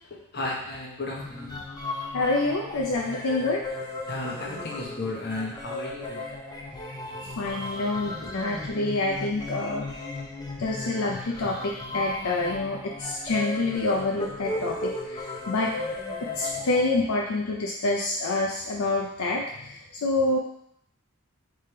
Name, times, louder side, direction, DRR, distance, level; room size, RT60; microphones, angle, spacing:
voice 1, 0.3-1.6 2.4-2.6 4.1-6.3 15.7-15.9 16.9-17.2, left 2 dB, 45° left, -2 dB, 1.0 m, -34 dB
sound 1, 1.2-17.2, left 2 dB, 20° left, 0.4 m, -36 dB
voice 2, 2.1-3.6 7.4-9.9 10.6-15.7 16.4-20.4, left 2 dB, 75° left, -1 dB, 0.5 m, -27 dB
3.3 x 3.3 x 4.4 m, 0.71 s
head